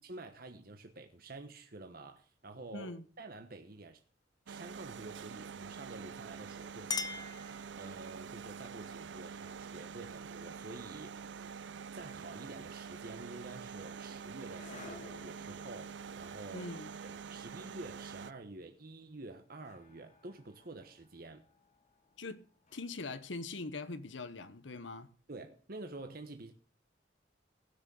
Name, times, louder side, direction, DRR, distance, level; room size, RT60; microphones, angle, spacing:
voice 1, 0.0-4.0 4.5-11.3 11.9-16.7 17.0-21.4 25.3-26.5, right 2 dB, 50° right, 1.1 m, -49 dB
voice 2, 2.7-3.0 16.5-16.9 22.2-22.4 22.7-25.1, left 3 dB, 80° left, 1.1 m, -42 dB
sound 1, 4.5-18.3, right 6 dB, 70° right, 0.5 m, -46 dB
Chink clink, 6.3-8.2, left 5 dB, 20° left, 0.8 m, -41 dB
sound 2, 13.4-24.5, left 3 dB, 40° left, 1.7 m, -59 dB
16.5 x 6.3 x 6.9 m
head